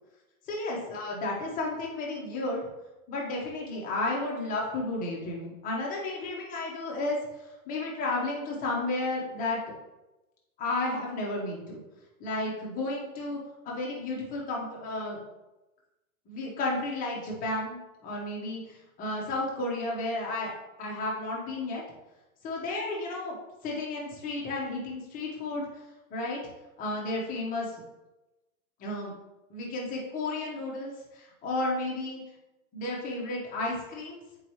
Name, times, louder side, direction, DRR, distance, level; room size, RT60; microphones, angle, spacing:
voice 1, 0.5-2.6 3.1-7.2 7.7-9.6 10.6-11.8 12.2-13.4 13.6-15.2 16.3-20.5 20.8-21.8 22.4-23.3 23.6-25.7 26.1-26.4 26.8-27.7 28.8-29.1 29.5-32.2 32.7-34.2, left 2 dB, 20° left, -3 dB, 1.2 m, -32 dB
6.9 x 4.7 x 3.1 m, 1.0 s
hypercardioid pair, 160°, 44 cm